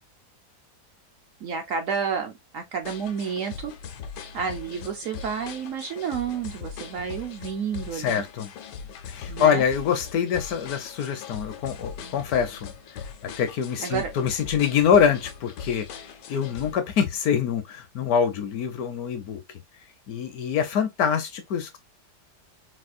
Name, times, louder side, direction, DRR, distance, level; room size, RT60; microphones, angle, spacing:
voice 1, 1.4-3.7 4.3-8.2 9.3-9.6 13.8-14.1, right 6 dB, 65° right, 0.8 m, -30 dB
sound 1, 2.8-16.8, left 6 dB, 85° left, 1.3 m, -40 dB
voice 2, 7.9-8.5 9.1-19.4 20.1-21.8, left 7 dB, 70° left, 1.0 m, -25 dB
4.1 x 2.3 x 2.4 m
omnidirectional pair, 1.8 m